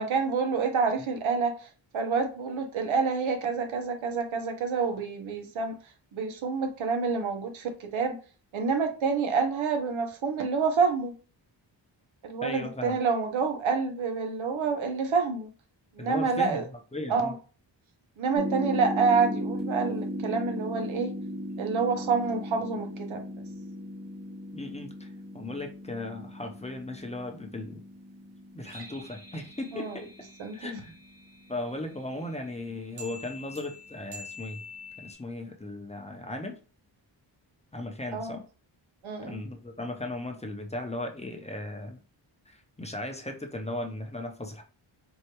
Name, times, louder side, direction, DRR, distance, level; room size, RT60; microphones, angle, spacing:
voice 1, 0.0-1.7 1.9-5.8 6.1-8.2 8.5-11.1 12.2-15.5 15.9-16.7 17.1-17.3 18.2-21.1 21.6-23.3 29.7-30.0 30.4-30.7 38.1-38.4 39.0-39.4, right 5 dB, 90° right, 0.9 m, -28 dB
voice 2, 12.4-13.0 16.0-16.6 16.9-17.4 24.5-25.1 25.3-27.8 28.5-30.1 30.5-30.9 31.5-34.6 35.0-36.6 37.7-38.4 39.2-42.0 42.5-44.6, left 2 dB, 15° left, 0.7 m, -37 dB
sound 1, 18.4-31.4 33.0-35.1, equal, 65° right, 1.2 m, -38 dB
4.5 x 2.3 x 2.9 m
cardioid pair, 70°, 46 cm